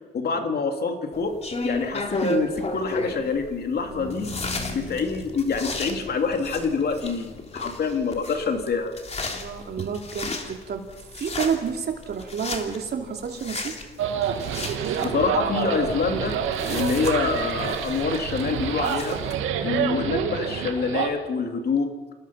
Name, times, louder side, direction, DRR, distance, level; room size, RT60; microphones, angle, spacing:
voice 1, 0.1-1.4 1.6-4.3 4.7-8.9 15.0-19.2 19.6-21.9, left 5 dB, 55° left, 5 dB, 3.0 m, -26 dB
sound 1, 1.1-19.3, left 2 dB, 35° left, 3.2 m, -34 dB
sound 2, 3.7-9.6, left 3 dB, 80° left, 3.4 m, -42 dB
voice 2, 3.9-4.7 9.2-10.9 11.1-13.7 16.6-16.8 19.2-20.1, right 6 dB, 55° right, 3 dB, 3.2 m, -31 dB
sound 3, 14.0-21.1, right 8 dB, 90° right, 2.2 m, -27 dB
29.0 x 18.5 x 5.9 m, 1.3 s
cardioid pair, 90°, 20 cm